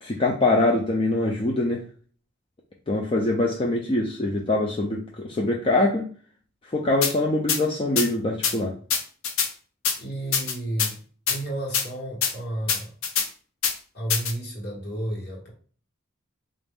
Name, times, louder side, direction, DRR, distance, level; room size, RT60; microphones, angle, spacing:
voice 1, 0.0-1.8 2.9-6.1 6.7-8.7, left 2 dB, 25° left, 0 dB, 0.4 m, -23 dB
sound 1, 7.0-7.1 7.5-7.6 8.0-8.1 8.4-8.5 8.9-9.5 9.8-10.0 10.3-10.9 11.3-11.4 11.7-11.8 12.2-12.3 12.7-13.3 13.6-13.7 14.1-14.3, left 6 dB, 80° left, 0.6 m, -23 dB
voice 2, 10.0-11.0 11.3-12.9 13.9-15.5, right 1 dB, 50° left, -2 dB, 1.3 m, -32 dB
4.0 x 2.5 x 3.5 m, 0.43 s
head